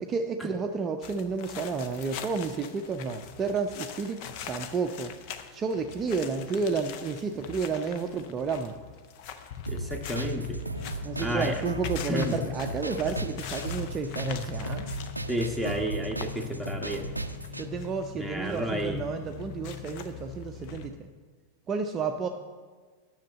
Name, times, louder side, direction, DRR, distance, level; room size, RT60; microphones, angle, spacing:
voice 1, 0.0-4.2 4.5-5.1 5.5-8.7 11.0-14.8 17.5-21.1 21.7-22.3, right 5 dB, 25° right, 4 dB, 0.6 m, -31 dB
sound 1, 1.0-20.9, left 8 dB, 45° left, 0.7 m, -41 dB
voice 2, 9.7-10.6 11.2-11.6 12.1-12.5 15.3-17.1 18.1-19.0, equal, 5° left, 5 dB, 1.3 m, -31 dB
sound 2, 9.7-17.7, right 2 dB, 85° right, 0.5 m, -36 dB
10.0 x 6.5 x 7.3 m, 1.5 s
figure-of-eight pair, 90°, 0 cm